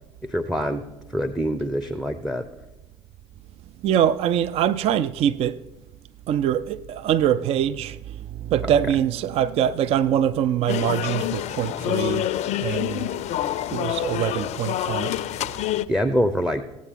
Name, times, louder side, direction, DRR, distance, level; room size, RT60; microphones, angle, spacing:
voice 1, 0.2-0.8 1.1-2.5 8.6-8.7 15.9-16.6, equal, 5° right, 0.6 m, -25 dB
voice 2, 3.8-5.6 6.3-13.1 13.7-15.1, right 10 dB, 45° right, 0.4 m, -23 dB
sound 1, 10.7-15.9, left 13 dB, 50° left, 0.4 m, -27 dB
16.5 x 8.3 x 3.6 m
hypercardioid pair, 60°, 15 cm